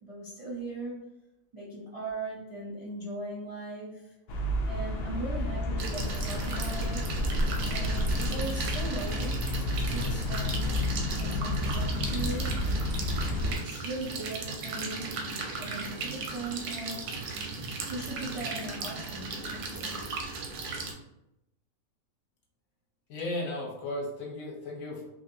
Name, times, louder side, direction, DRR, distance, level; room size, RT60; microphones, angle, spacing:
voice 1, 0.0-1.0 1.5-4.1 4.7-9.4 9.9-12.6 13.4-15.1 15.5-17.1 17.9-20.0, right 2 dB, 40° right, -7 dB, 0.5 m, -39 dB
sound 1, 4.3-13.5, left 1 dB, 85° left, 0.5 m, -30 dB
sound 2, 5.8-20.9, right 4 dB, 85° right, 1.1 m, -36 dB
voice 2, 23.1-25.0, left 1 dB, 65° left, -1 dB, 1.0 m, -35 dB
3.3 x 2.4 x 2.6 m, 0.90 s
omnidirectional pair, 1.6 m